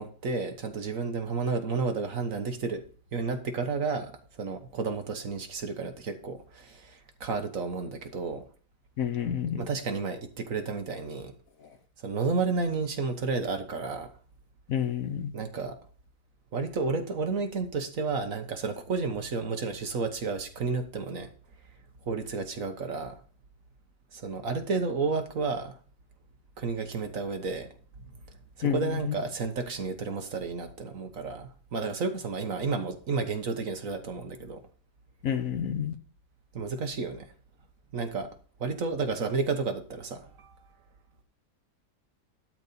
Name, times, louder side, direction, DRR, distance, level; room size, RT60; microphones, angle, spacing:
voice 1, 0.0-2.8 3.1-8.4 9.6-11.3 12.0-14.1 15.3-15.8 16.5-21.3 22.0-23.2 24.1-25.7 26.6-27.7 28.6-34.6 36.5-37.3 37.9-38.3 38.6-40.5, right 4 dB, 55° right, 1.6 m, -31 dB
voice 2, 9.0-9.6 14.7-15.3 28.6-29.1 35.2-36.0, left 8 dB, 60° left, 1.2 m, -29 dB
12.0 x 4.2 x 6.8 m
omnidirectional pair, 1.8 m